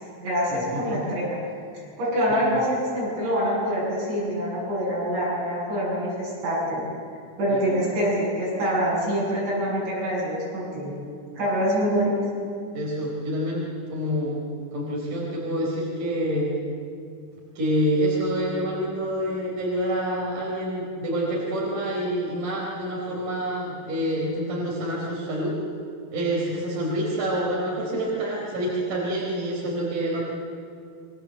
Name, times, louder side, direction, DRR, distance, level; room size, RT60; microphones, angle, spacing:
voice 1, 0.2-1.4 1.7-6.9 7.4-10.9 11.4-12.2, equal, 70° right, -6 dB, 10.0 m, -25 dB
voice 2, 0.7-1.0 2.3-2.6 7.5-7.6 12.7-14.4 14.7-16.5 17.6-25.5 26.1-30.2, equal, 45° right, -5 dB, 5.4 m, -27 dB
28.0 x 23.5 x 7.8 m, 2.3 s
omnidirectional pair, 5.3 m